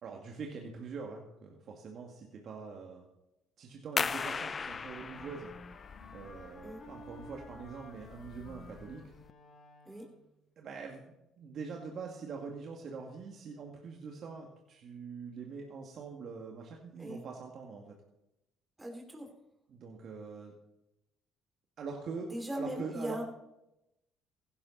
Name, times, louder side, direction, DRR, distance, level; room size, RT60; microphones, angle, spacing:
voice 1, 0.0-3.1 3.6-5.5 6.1-9.0 10.6-11.0 11.4-18.0 19.7-20.5 21.8-23.2, right 5 dB, 55° right, 0 dB, 2.3 m, -44 dB
sound 1, 4.0-9.3, left 5 dB, 35° left, 0.6 m, -39 dB
Wind instrument woodwind instrument, 4.6-10.3, left 2 dB, 55° left, 3.8 m, -53 dB
voice 2, 18.8-19.3 22.3-23.2, equal, 15° right, 2 dB, 3.1 m, -39 dB
16.5 x 11.5 x 4.2 m, 0.88 s
supercardioid pair, 75°, 0 cm